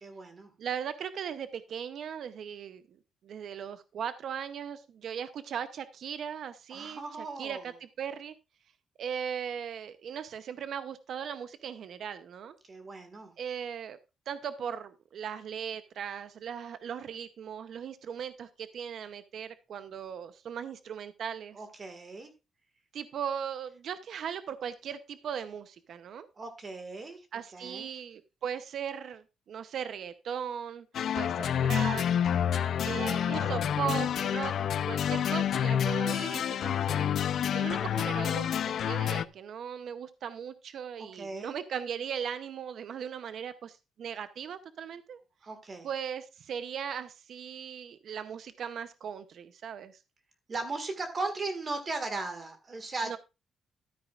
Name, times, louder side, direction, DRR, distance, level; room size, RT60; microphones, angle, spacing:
voice 1, 0.0-0.5 6.7-7.6 12.7-13.3 21.5-22.3 26.4-27.2 27.5-27.9 32.8-33.6 37.6-38.2 41.1-41.6 45.4-45.9 50.5-53.2, right 3 dB, 30° right, 7 dB, 1.8 m, -38 dB
voice 2, 0.6-2.8 3.2-8.3 9.0-12.6 13.4-14.0 14.3-21.6 22.9-26.3 27.3-30.9 31.1-32.0 32.8-34.5 34.9-37.1 37.5-45.2 45.8-50.0 53.0-53.2, right 8 dB, 60° right, 12 dB, 0.7 m, -38 dB
sound 1, 30.9-39.2, left 9 dB, 60° left, 0.5 m, -28 dB
13.0 x 9.2 x 2.4 m, 0.26 s
cardioid pair, 145°, 0 cm